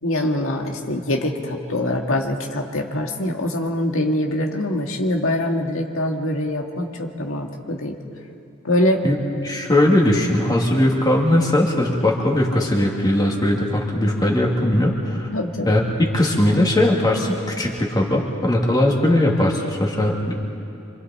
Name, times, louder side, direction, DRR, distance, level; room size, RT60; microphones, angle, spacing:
voice 1, 0.0-8.0 8.6-9.0 15.3-15.8, left 1 dB, 75° left, 2 dB, 1.8 m, -23 dB
voice 2, 9.4-15.3 15.7-20.4, left 1 dB, 20° left, -2 dB, 2.5 m, -19 dB
27.5 x 26.0 x 4.3 m, 2.7 s
head